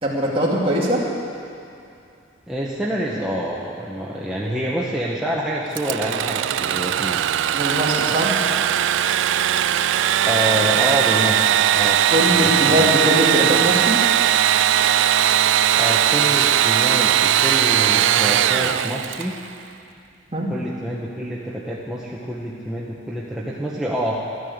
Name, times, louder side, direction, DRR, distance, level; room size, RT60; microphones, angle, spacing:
voice 1, 0.0-1.0 7.5-8.3 12.1-14.0 20.3-20.5, equal, 30° right, -4 dB, 2.6 m, -21 dB
voice 2, 2.5-7.3 10.2-12.0 12.3-12.9 15.3-19.3 20.5-24.3, equal, 5° right, -6 dB, 1.1 m, -27 dB
Engine / Sawing, 5.7-19.4, right 10 dB, 75° right, 0.3 m, -19 dB
12.5 x 12.5 x 8.0 m, 2.6 s
head